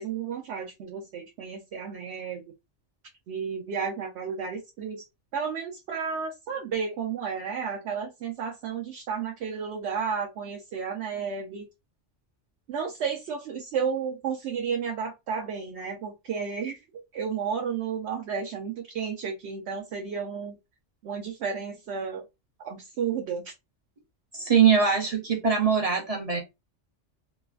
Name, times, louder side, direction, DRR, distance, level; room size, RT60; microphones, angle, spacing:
voice 1, 0.0-2.4 3.3-5.0 5.3-11.7 12.7-16.8 17.1-20.6 21.0-22.3 22.6-23.5, right 6 dB, 70° right, 0.9 m, -32 dB
voice 2, 24.3-26.4, right 6 dB, 40° right, 0.6 m, -22 dB
3.1 x 2.1 x 2.3 m
omnidirectional pair, 1.3 m